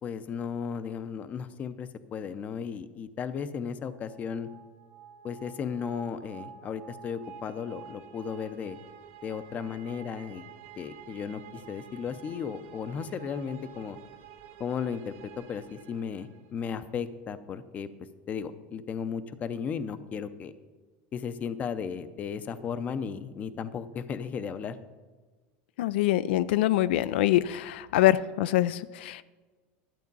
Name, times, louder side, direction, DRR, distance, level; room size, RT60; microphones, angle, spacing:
voice 1, 0.0-4.5 5.2-8.8 9.2-10.5 10.8-14.0 14.6-17.9 18.3-20.5 21.1-24.8, left 6 dB, 25° left, 13 dB, 0.6 m, -35 dB
sound 1, 3.9-16.7, right 9 dB, 65° right, 1.5 m, -50 dB
voice 2, 25.8-29.2, left 14 dB, 85° left, 15 dB, 0.3 m, -24 dB
12.0 x 8.2 x 5.4 m, 1.4 s
supercardioid pair, 155°, 6 cm